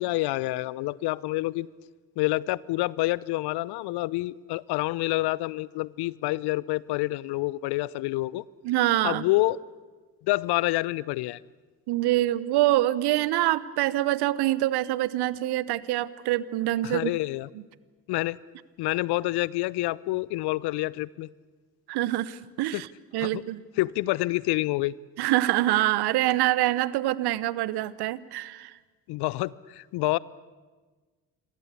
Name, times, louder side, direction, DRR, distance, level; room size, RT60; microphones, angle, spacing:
voice 1, 0.0-1.7 2.2-8.4 9.0-9.6 10.2-11.4 16.8-17.5 18.1-18.4 18.8-21.3 22.7-22.8 23.2-23.4 23.8-24.9 29.1-30.2, left 19 dB, 60° left, 23 dB, 0.7 m, -27 dB
voice 2, 8.6-9.2 11.9-17.2 17.5-17.6 21.9-22.9 23.1-23.6 25.2-28.7, right 15 dB, 60° right, 20 dB, 1.0 m, -25 dB
28.0 x 23.0 x 8.2 m, 1.3 s
figure-of-eight pair, 45°, 44 cm